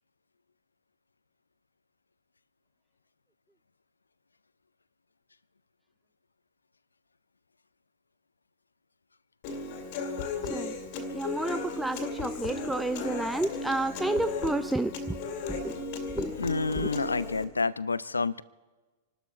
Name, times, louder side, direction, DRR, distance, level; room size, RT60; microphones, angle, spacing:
Human voice / Acoustic guitar, 9.4-17.4, left 3 dB, 50° left, 2.2 m, -35 dB
voice 1, 11.1-15.2 15.5-15.7 16.1-16.3, right 2 dB, 5° right, 11 dB, 0.5 m, -30 dB
voice 2, 12.8-13.2 13.7-13.9 15.4-15.9 16.4-18.4, left 4 dB, 80° left, 20 dB, 0.5 m, -30 dB
27.0 x 12.5 x 4.3 m, 1.3 s
figure-of-eight pair, 100°, 0 cm